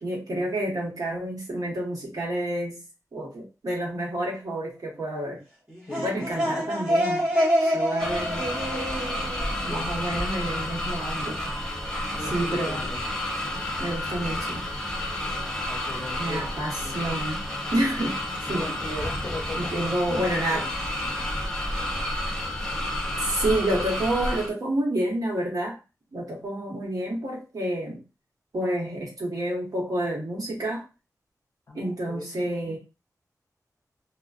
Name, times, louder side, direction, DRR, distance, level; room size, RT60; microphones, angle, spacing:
voice 1, 0.0-2.8 3.1-5.4 6.0-7.3 7.6-8.5 9.5-11.5 12.3-12.9 13.8-14.6 16.2-17.4 17.7-18.2 18.5-18.7 19.6-20.7 23.2-25.8 26.1-28.0 28.5-30.8 31.7-32.8, right 1 dB, 65° right, -2 dB, 1.2 m, -29 dB
sound 1, 5.7-10.4, equal, 15° right, 1.2 m, -27 dB
voice 2, 5.9-6.7 9.6-9.9 12.1-13.1 14.3-14.4 15.7-16.5 16.8-17.1 18.6-20.7 31.7-32.8, left 2 dB, 45° left, 1 dB, 0.7 m, -39 dB
sound 2, 8.0-24.5, left 1 dB, 10° left, 0.8 m, -30 dB
2.4 x 2.3 x 2.4 m, 0.28 s
wide cardioid pair, 110°, 7 cm